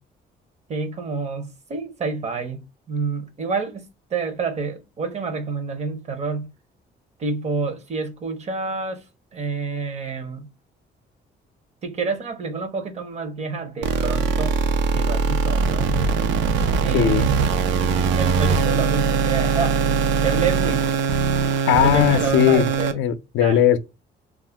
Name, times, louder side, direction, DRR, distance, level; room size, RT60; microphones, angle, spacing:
voice 1, 0.7-3.9 4.1-6.5 7.2-9.0 9.3-10.5 11.8-14.6 14.9-16.0 16.8-17.8 18.2-20.9 21.5-23.0 23.4-23.6, right 4 dB, 35° right, 0.6 m, -28 dB
sound 1, 13.8-22.9, right 5 dB, 80° right, 0.5 m, -21 dB
voice 2, 16.9-17.3 21.6-22.7 22.9-23.8, left 11 dB, 80° left, 0.4 m, -18 dB
2.4 x 2.1 x 3.3 m
cardioid pair, 130°, 19 cm